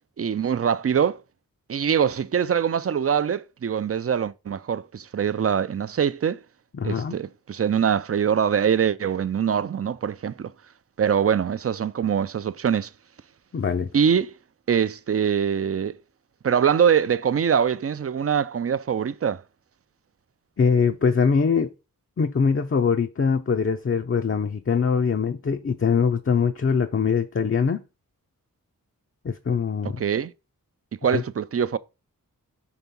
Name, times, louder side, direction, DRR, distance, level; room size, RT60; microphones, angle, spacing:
voice 1, 0.2-1.2 1.7-6.4 6.8-10.5 11.0-12.9 13.9-14.3 14.7-15.9 16.4-19.4 30.0-30.3 31.0-31.8, right 7 dB, 45° right, 0.4 m, -23 dB
voice 2, 6.8-7.2 13.5-13.9 20.6-21.7 22.2-27.8 29.2-30.0 31.1-31.2, left 6 dB, 40° left, 0.5 m, -22 dB
5.9 x 3.5 x 5.3 m
wide cardioid pair, 70°, 35 cm